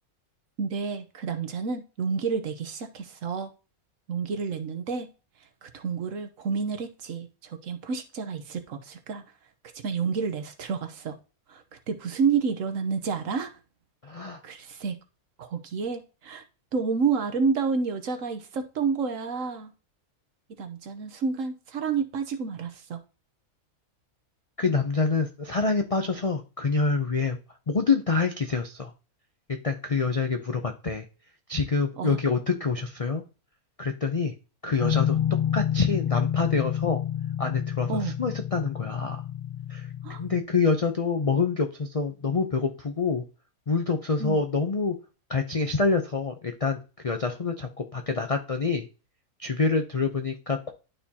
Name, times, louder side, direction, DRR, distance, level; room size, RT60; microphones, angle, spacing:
voice 1, 0.6-3.5 4.1-5.1 5.6-9.2 9.8-11.2 11.5-13.5 14.4-14.9 15.4-16.4 16.7-19.7 20.6-23.0 32.0-32.2 37.9-38.1 40.0-40.2 44.2-44.4, right 5 dB, 65° right, 7 dB, 1.2 m, -29 dB
voice 2, 14.0-14.4 24.6-27.4 27.7-28.9 29.6-31.1 31.5-33.2 33.8-34.3 34.6-35.2 35.5-37.0 37.4-39.2 39.7-39.9 40.2-43.2 43.7-45.0 45.3-46.8 47.0-48.9 49.4-50.7, left 4 dB, 60° left, 5 dB, 0.3 m, -26 dB
sound 1, 34.8-40.4, left 10 dB, 40° left, 0.9 m, -29 dB
11.5 x 4.4 x 2.8 m, 0.33 s
omnidirectional pair, 1.6 m